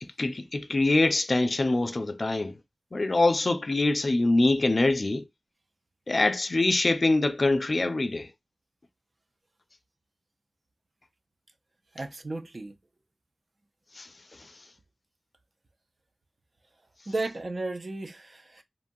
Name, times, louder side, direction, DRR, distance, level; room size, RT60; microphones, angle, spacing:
voice 1, 0.0-2.6 2.9-5.3 6.1-8.3 14.0-14.1 14.4-14.5, left 2 dB, 55° left, 0.4 m, -24 dB
voice 2, 11.9-12.7 17.1-18.6, right 2 dB, 55° right, 0.5 m, -34 dB
3.0 x 2.2 x 2.6 m
wide cardioid pair, 55°, 0 cm